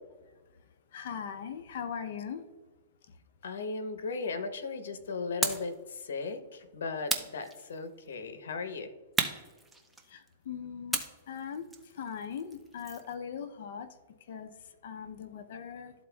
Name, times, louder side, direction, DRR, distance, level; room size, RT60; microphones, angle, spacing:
voice 1, 0.9-2.4 10.1-11.0 11.3-11.7 12.0-13.9 14.3-14.5 14.8-15.9, left 7 dB, 60° left, 9 dB, 0.6 m, -39 dB
voice 2, 3.4-8.9, left 4 dB, 80° left, 9 dB, 0.9 m, -37 dB
sound 1, 5.4-5.8 7.1-8.0 9.2-10.3 10.9-13.1, right 2 dB, 5° right, 0.5 m, -34 dB
12.5 x 4.2 x 2.3 m, 1.3 s
hypercardioid pair, 155°, 0 cm